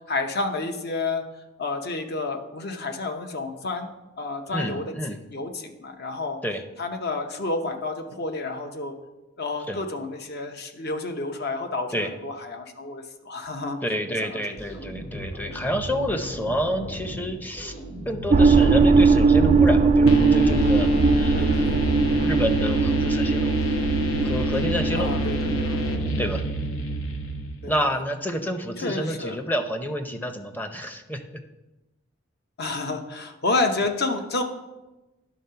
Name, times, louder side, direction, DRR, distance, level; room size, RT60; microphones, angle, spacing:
voice 1, 0.1-1.2 1.6-3.9 4.2-5.0 5.3-6.4 6.8-8.9 9.4-13.8 14.3-14.6 21.3-21.7 24.9-25.6 27.6-27.7 28.8-29.4 32.6-34.4, left 3 dB, 55° left, 5 dB, 0.9 m, -30 dB
voice 2, 4.5-5.2 6.4-6.6 9.7-9.8 11.9-12.1 13.8-17.7 18.1-21.8 22.2-23.5 24.2-25.1 26.2-26.4 27.6-31.4, equal, 10° left, 7 dB, 0.6 m, -29 dB
sound 1, 14.6-26.8, equal, 35° left, 2.2 m, -37 dB
sound 2, 18.3-25.8, right 4 dB, 35° right, 0.3 m, -20 dB
sound 3, 20.1-27.7, equal, 85° left, 0.9 m, -27 dB
11.0 x 3.7 x 5.6 m, 1.0 s
head